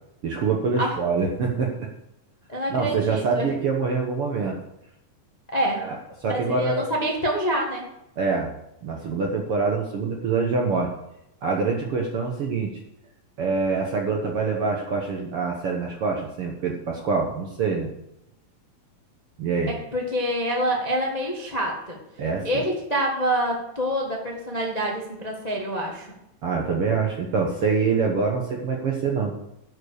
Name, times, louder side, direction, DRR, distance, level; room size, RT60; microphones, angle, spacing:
voice 1, 0.2-1.7 2.7-4.6 5.8-6.0 6.2-6.8 8.2-8.5 8.8-10.9 11.4-12.8 13.4-17.9 19.4-19.7 22.2-22.6 26.4-29.3, right 4 dB, 60° right, 0 dB, 1.5 m, -25 dB
voice 2, 2.5-3.5 5.5-5.9 6.2-7.8 19.7-22.0 22.4-26.2, equal, 30° left, -1 dB, 0.6 m, -26 dB
11.5 x 7.4 x 6.5 m, 0.86 s
omnidirectional pair, 4.1 m